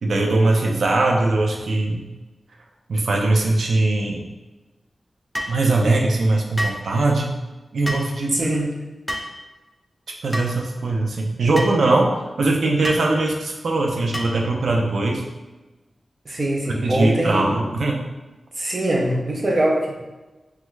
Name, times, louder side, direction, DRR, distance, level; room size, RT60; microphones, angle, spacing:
voice 1, 0.0-2.0 2.9-4.2 5.5-7.3 7.7-8.6 10.2-12.1 12.4-15.2 16.8-18.0, right 2 dB, 85° right, 0 dB, 0.4 m, -20 dB
sound 1, 5.3-5.6 6.6-6.8 7.9-8.1 9.1-9.4 10.3-10.5 11.6-11.8 12.8-13.1 14.1-14.4, equal, 5° left, 0.3 m, -28 dB
voice 2, 8.3-8.7 16.3-17.6 18.6-20.0, right 1 dB, 40° right, -2 dB, 0.6 m, -22 dB
3.1 x 2.3 x 3.1 m, 1.1 s
wide cardioid pair, 125°, 0 cm